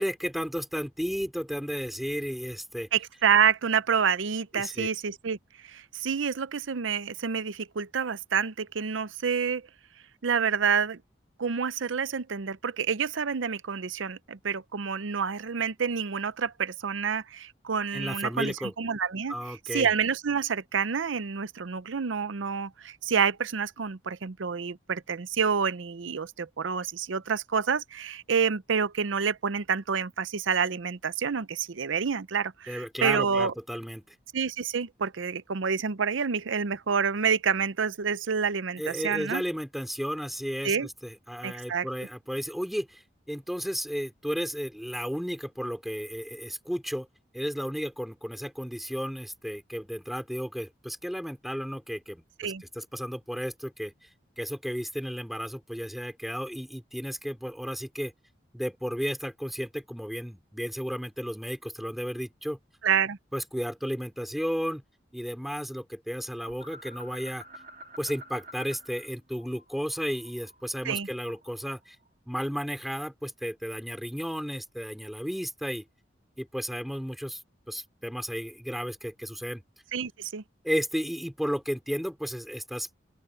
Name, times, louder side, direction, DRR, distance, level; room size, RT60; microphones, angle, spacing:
voice 1, 0.0-2.9 4.5-4.9 17.9-18.7 19.3-19.9 32.7-34.0 38.8-40.8 41.0-43.0 43.3-47.1 47.3-53.9 54.4-58.1 58.5-62.6 63.3-64.8 65.1-67.4 68.0-72.0 72.3-75.9 76.4-77.4 77.7-79.6 80.6-82.9, equal, ahead, 3.7 m, -33 dB
voice 2, 2.9-5.4 5.6-9.6 10.2-11.0 11.4-33.5 34.3-39.4 40.6-40.9 41.4-41.9 52.4-52.6 62.8-63.2 70.8-71.1 79.9-80.4, right 6 dB, 90° right, 0.6 m, -28 dB
sound 1, 66.5-69.1 69.3-71.6, right 1 dB, 40° right, 3.1 m, -48 dB
open air
head